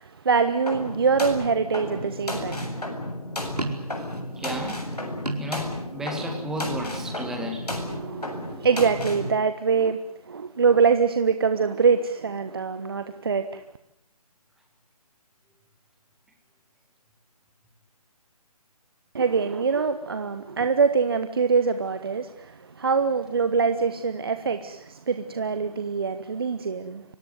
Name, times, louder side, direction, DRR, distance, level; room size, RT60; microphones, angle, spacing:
voice 1, 0.0-2.7 7.9-10.0 10.2-13.6 19.1-27.0, right 5 dB, 40° right, 1.2 m, -24 dB
sound 1, 0.7-9.3, left 1 dB, 80° left, 8.0 m, -33 dB
sound 2, 3.5-6.1 6.4-7.0 7.6-8.8, right 2 dB, 80° right, 4.7 m, -36 dB
voice 2, 4.4-4.8 5.4-7.7, equal, ahead, 2.0 m, -33 dB
25.0 x 18.5 x 9.5 m
figure-of-eight pair, 160°, 20 cm